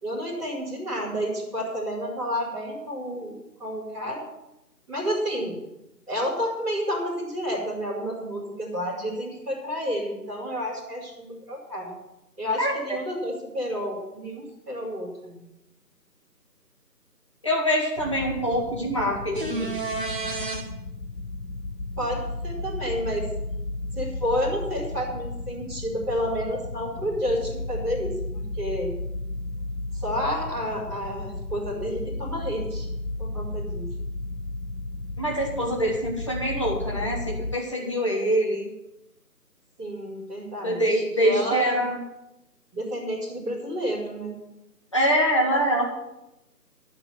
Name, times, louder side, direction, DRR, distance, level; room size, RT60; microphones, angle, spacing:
voice 1, 0.0-3.3 3.6-4.2 4.9-5.6 6.1-11.9 12.4-15.4 22.0-23.3 23.9-28.9 29.9-32.9 33.2-33.8 39.8-41.8 42.7-44.4, equal, ahead, -22 dB, 1.7 m, -30 dB
voice 2, 17.4-19.8 35.2-38.7 40.6-42.0 44.9-45.9, equal, 20° left, -2 dB, 1.4 m, -24 dB
sound 1, 18.0-37.6, left 2 dB, 60° left, 0.9 m, -34 dB
sound 2, 19.3-20.6 24.5-24.6, right 3 dB, 30° right, 1.7 m, -30 dB
12.5 x 6.0 x 9.3 m, 0.93 s
figure-of-eight pair, 170°, 50 cm